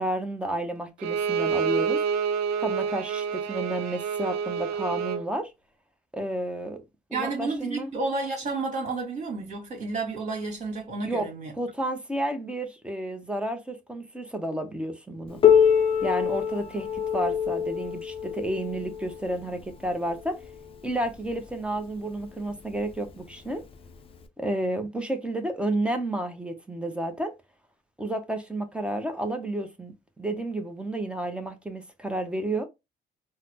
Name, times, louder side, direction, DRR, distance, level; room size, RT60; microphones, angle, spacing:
voice 1, 0.0-2.0 2.6-5.5 6.1-6.8 7.1-7.9 11.0-11.3 11.5-15.4 16.0-20.4 20.8-23.6 24.4-27.3 28.0-32.6, right 1 dB, 5° right, 0.7 m, -31 dB
Bowed string instrument, 1.0-5.3, right 7 dB, 90° right, 0.5 m, -28 dB
voice 2, 7.1-11.5, right 3 dB, 45° right, 1.9 m, -31 dB
Piano, 15.4-20.7 21.6-21.7 22.2-22.3 23.1-23.2 24.2-24.3, left 8 dB, 35° left, 0.5 m, -24 dB
3.9 x 2.1 x 2.8 m
cardioid pair, 110°, 17 cm